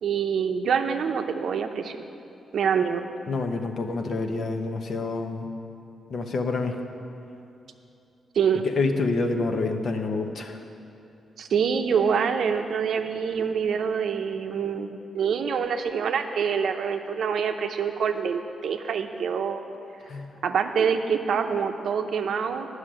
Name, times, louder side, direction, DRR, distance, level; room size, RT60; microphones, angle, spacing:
voice 1, 0.0-2.0 2.5-3.0 8.3-8.7 11.4-19.6 20.4-22.7, right 6 dB, 65° right, 6 dB, 0.7 m, -26 dB
voice 2, 3.3-5.5 6.1-6.7 8.6-10.6 20.1-20.3, left 3 dB, 50° left, 5 dB, 0.9 m, -27 dB
11.0 x 6.5 x 8.8 m, 2.8 s
wide cardioid pair, 155°, 0 cm